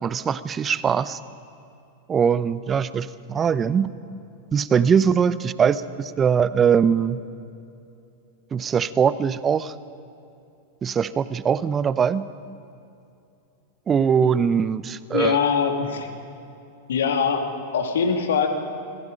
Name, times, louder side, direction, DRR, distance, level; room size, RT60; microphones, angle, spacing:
voice 1, 0.0-1.2 2.1-3.9 4.5-7.2 8.5-9.7 10.8-12.3 13.9-15.4, right 7 dB, 20° right, 16 dB, 0.7 m, -21 dB
voice 2, 15.1-16.1 16.9-18.5, left 6 dB, 60° left, 4 dB, 2.2 m, -22 dB
26.0 x 19.0 x 5.2 m, 2.7 s
figure-of-eight pair, 90°, 0 cm